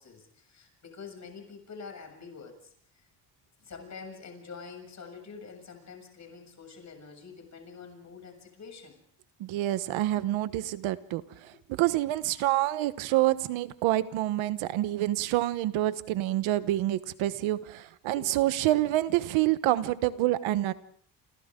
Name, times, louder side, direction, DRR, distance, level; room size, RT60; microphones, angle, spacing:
voice 1, 0.0-3.1 3.6-9.0 11.4-11.6 17.3-17.4 18.1-18.4, left 5 dB, 35° left, 4 dB, 7.4 m, -46 dB
voice 2, 9.4-20.7, right 15 dB, 90° right, 13 dB, 1.2 m, -27 dB
29.0 x 28.0 x 3.8 m, 0.62 s
cardioid pair, 130°, 46 cm